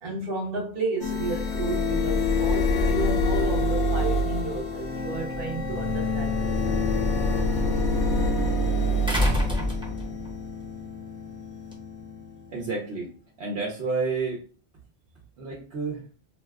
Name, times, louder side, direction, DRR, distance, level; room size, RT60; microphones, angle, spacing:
voice 1, 0.0-6.7, right 3 dB, 60° right, 1.2 m, -32 dB
sound 1, 1.0-12.6, left 2 dB, 75° left, 1.0 m, -26 dB
sound 2, 5.8-5.9 9.1-10.4 11.7-11.8, left 1 dB, 5° right, 0.7 m, -25 dB
voice 2, 12.5-13.1 13.4-14.5 15.4-16.1, right 4 dB, 75° right, 1.0 m, -30 dB
2.8 x 2.1 x 3.4 m
omnidirectional pair, 1.1 m